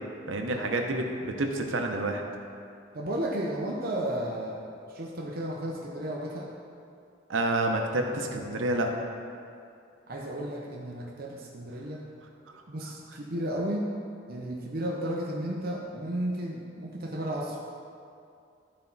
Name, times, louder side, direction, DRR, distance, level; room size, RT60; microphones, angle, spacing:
voice 1, 0.3-2.2 7.3-8.9, right 2 dB, 90° right, 3 dB, 0.8 m, -28 dB
voice 2, 2.9-6.5 10.1-12.0 12.7-13.9 14.3-17.6, right 1 dB, 50° right, -2 dB, 0.8 m, -33 dB
12.5 x 4.3 x 4.0 m, 2.4 s
head